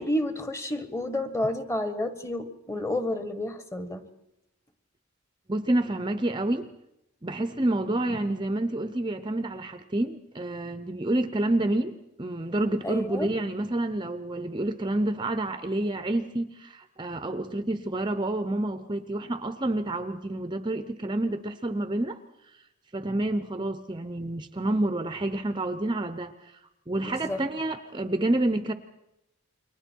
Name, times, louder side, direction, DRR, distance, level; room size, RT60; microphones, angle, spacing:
voice 1, 0.0-4.1 12.8-13.3 27.0-27.4, left 1 dB, 15° left, 9 dB, 1.4 m, -30 dB
voice 2, 5.5-6.7 7.2-22.2 22.9-26.5 26.9-28.7, right 1 dB, 20° right, 10 dB, 0.7 m, -28 dB
29.0 x 23.5 x 4.6 m, 0.87 s
head